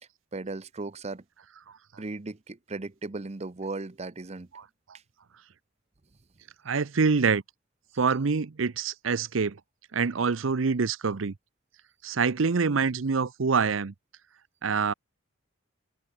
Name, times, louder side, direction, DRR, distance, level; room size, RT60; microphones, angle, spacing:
voice 1, 0.3-1.2 2.0-4.5, right 3 dB, 35° right, 0.7 m, -36 dB
voice 2, 6.6-7.4 8.0-9.6 9.9-11.3 12.0-13.9 14.6-14.9, right 5 dB, 75° right, 0.7 m, -25 dB
open air
head